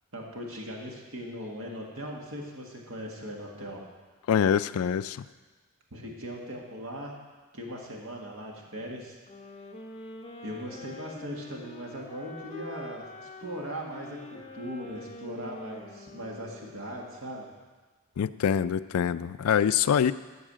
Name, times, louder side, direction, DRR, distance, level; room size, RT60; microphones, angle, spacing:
voice 1, 0.1-3.8 5.9-7.1 7.5-9.2 10.4-17.5, equal, 65° right, -1 dB, 1.7 m, -39 dB
voice 2, 4.3-5.2 18.2-20.1, left 8 dB, 80° left, 14 dB, 0.4 m, -25 dB
sound 1, 9.3-17.2, left 1 dB, 30° left, 0.9 m, -45 dB
14.0 x 4.8 x 7.4 m, 1.3 s
head